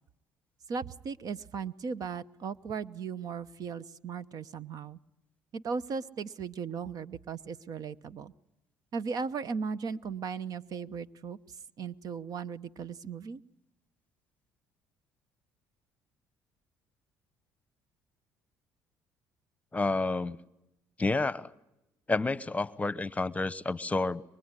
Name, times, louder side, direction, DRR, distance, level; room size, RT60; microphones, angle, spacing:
voice 1, 0.7-5.0 5.5-8.3 8.9-11.4 11.8-13.4, right 5 dB, 55° right, 15 dB, 0.9 m, -37 dB
voice 2, 19.7-20.4 21.0-21.5 22.1-24.2, left 3 dB, 20° left, 18 dB, 1.0 m, -29 dB
24.0 x 22.0 x 9.7 m, 0.91 s
supercardioid pair, 75°, 8 cm